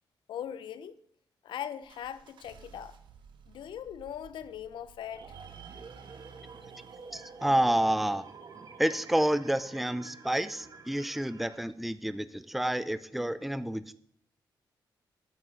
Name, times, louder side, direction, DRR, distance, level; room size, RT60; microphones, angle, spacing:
voice 1, 0.3-1.0 1.4-3.0 3.5-5.3, left 9 dB, 90° left, 0.6 m, -40 dB
sound 1, 1.8-8.7, right 6 dB, 85° right, 1.0 m, -55 dB
sound 2, 5.1-11.6, right 5 dB, 50° right, 1.4 m, -49 dB
voice 2, 7.1-8.3 8.8-13.9, right 1 dB, ahead, 0.5 m, -29 dB
9.3 x 6.1 x 8.1 m
cardioid pair, 90°, 8 cm